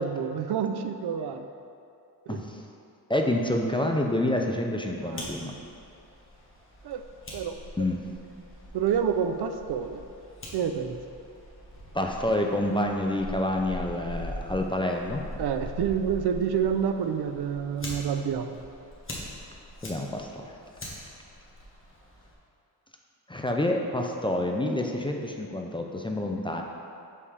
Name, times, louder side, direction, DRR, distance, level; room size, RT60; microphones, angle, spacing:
voice 1, 0.0-1.5 2.3-2.4 5.1-5.3 6.8-7.0 7.3-7.6 8.7-10.0 10.5-11.0 15.4-18.6, right 7 dB, 80° right, 7 dB, 0.5 m, -28 dB
voice 2, 2.3-2.7 3.1-5.5 7.8-8.0 11.9-15.2 19.8-20.5 23.3-26.6, left 1 dB, 15° left, 1 dB, 0.4 m, -28 dB
Fire, 4.9-22.3, left 1 dB, 30° left, 1.3 m, -43 dB
6.7 x 5.6 x 3.3 m, 2.5 s
wide cardioid pair, 115°, 39 cm